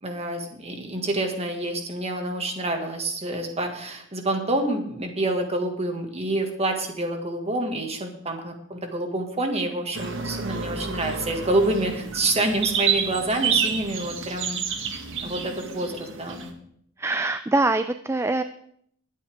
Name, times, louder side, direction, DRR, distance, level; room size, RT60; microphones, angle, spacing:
voice 1, 0.0-14.6 15.2-16.5, right 2 dB, 30° right, 4 dB, 2.0 m, -27 dB
sound 1, 9.9-16.5, right 6 dB, 65° right, 1.6 m, -29 dB
voice 2, 17.0-18.4, right 2 dB, 15° right, 11 dB, 0.4 m, -23 dB
22.0 x 8.6 x 3.6 m, 0.68 s
head